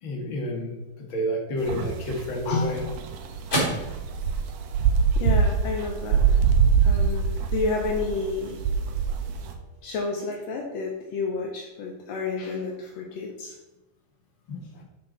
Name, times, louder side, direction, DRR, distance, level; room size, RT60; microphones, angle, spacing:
voice 1, 0.0-0.8 1.1-2.8 14.5-14.8, equal, 40° left, 0 dB, 2.1 m, -30 dB
sound 1, 1.7-9.5, right 6 dB, 80° right, 2.7 m, -24 dB
sound 2, 2.2-10.8, right 1 dB, 20° left, 4.0 m, -37 dB
voice 2, 5.1-6.4 6.8-8.6 9.8-13.5, left 4 dB, 70° left, 1 dB, 1.6 m, -30 dB
12.5 x 6.2 x 4.2 m, 1.1 s
omnidirectional pair, 4.2 m